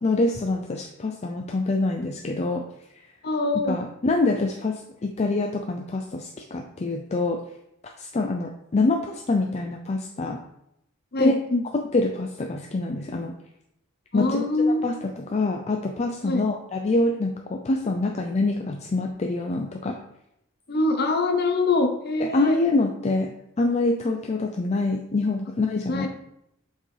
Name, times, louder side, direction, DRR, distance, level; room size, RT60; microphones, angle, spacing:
voice 1, 0.0-2.6 3.6-7.4 8.0-10.4 11.2-11.3 11.9-13.3 14.1-20.0 22.2-23.3 23.6-26.1, left 2 dB, 30° left, 3 dB, 0.4 m, -25 dB
voice 2, 3.2-3.7 11.1-11.6 14.1-14.8 16.2-16.4 20.7-22.6 25.9-26.1, left 2 dB, 50° left, 5 dB, 0.8 m, -24 dB
7.4 x 4.6 x 3.3 m, 0.81 s
head